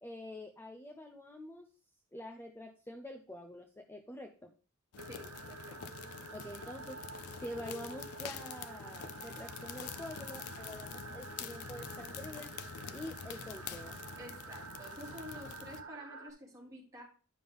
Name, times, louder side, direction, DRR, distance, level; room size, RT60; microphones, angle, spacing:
voice 1, 0.0-1.7 2.1-4.5 6.3-12.5 12.9-14.0, left 1 dB, 10° left, 4 dB, 0.5 m, -47 dB
sound 1, 4.9-15.8, left 7 dB, 75° left, 0.5 m, -46 dB
voice 2, 5.0-5.8 14.2-17.0, equal, 15° right, -4 dB, 2.8 m, -49 dB
sound 2, 5.0-16.3, right 4 dB, 80° right, 1.2 m, -49 dB
9.6 x 5.4 x 3.5 m, 0.37 s
head